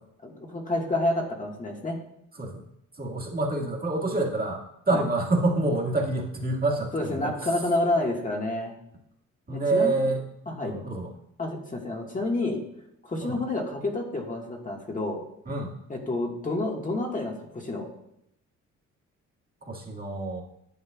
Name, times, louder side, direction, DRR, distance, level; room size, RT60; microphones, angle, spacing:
voice 1, 0.2-2.0 4.9-5.0 6.9-8.7 9.7-10.0 10.5-10.8 11.4-12.6 13.0-15.2 15.9-17.9, left 2 dB, 25° left, 0 dB, 1.6 m, -29 dB
voice 2, 3.0-7.6 9.5-10.2 10.6-11.1 13.2-13.4 15.5-15.7 19.6-20.4, right 2 dB, 30° right, -2 dB, 1.9 m, -27 dB
10.5 x 7.8 x 2.3 m, 0.77 s
cardioid pair, 90°, 30 cm